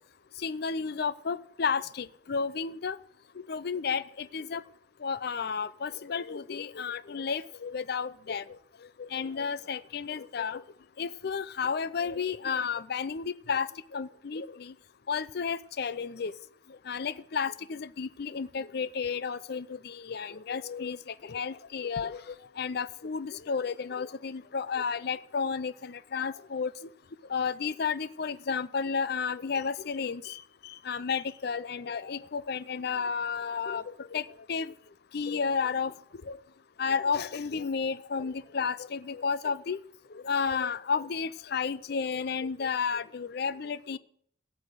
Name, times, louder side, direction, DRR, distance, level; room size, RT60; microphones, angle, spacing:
voice 1, 0.4-3.0 3.5-4.6 5.0-8.4 9.0-10.6 11.0-14.7 15.1-16.3 16.9-26.7 27.3-34.7 35.1-35.9 36.3-36.4 36.8-39.8 40.2-44.0, left 5 dB, 55° left, 17 dB, 0.5 m, -32 dB
16.5 x 6.4 x 7.8 m, 0.67 s
head